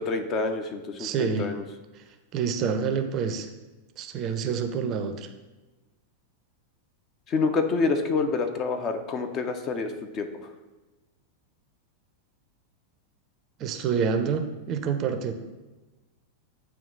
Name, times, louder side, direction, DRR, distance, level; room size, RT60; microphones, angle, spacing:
voice 1, 0.0-1.6 7.3-10.3, left 4 dB, 30° left, 6 dB, 0.5 m, -27 dB
voice 2, 1.0-1.5 2.3-3.5 4.0-5.3 13.6-15.3, right 6 dB, 35° right, 7 dB, 0.5 m, -27 dB
8.6 x 2.9 x 3.9 m, 1.1 s
figure-of-eight pair, 90°, 0 cm